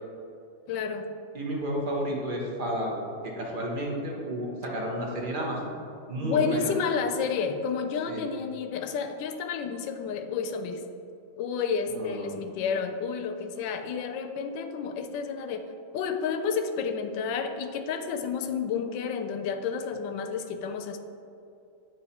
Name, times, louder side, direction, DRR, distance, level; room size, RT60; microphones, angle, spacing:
voice 1, 0.7-1.1 6.2-10.8 11.4-15.6 15.9-21.0, left 6 dB, 85° left, 7 dB, 1.3 m, -30 dB
voice 2, 1.3-3.0 3.2-5.7 6.1-6.7 8.1-8.2 11.9-12.3, right 1 dB, 40° right, -2 dB, 0.9 m, -31 dB
9.2 x 3.1 x 4.1 m, 2.6 s
omnidirectional pair, 1.9 m